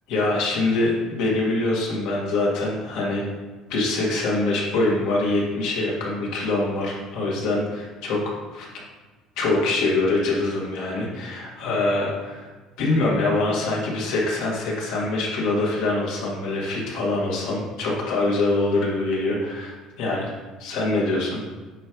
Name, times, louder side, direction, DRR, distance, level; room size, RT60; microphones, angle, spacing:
voice 1, 0.1-3.3 3.7-8.2 8.5-8.7 9.4-12.5 12.8-20.3 20.6-21.4, left 2 dB, 75° left, -3 dB, 2.1 m, -24 dB
9.0 x 5.5 x 3.2 m, 1.3 s
cardioid pair, 165°, 0 cm